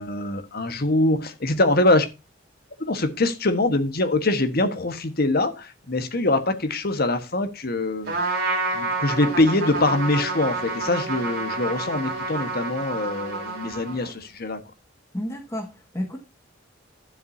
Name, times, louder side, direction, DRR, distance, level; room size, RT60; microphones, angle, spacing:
voice 1, 0.0-2.1 2.8-8.4 8.7-14.6, left 2 dB, 50° left, 1.4 m, -23 dB
Trumpet, 8.1-14.2, right 3 dB, 55° right, 3.9 m, -29 dB
voice 2, 15.1-16.2, equal, 15° left, 1.6 m, -31 dB
12.0 x 7.8 x 2.8 m
head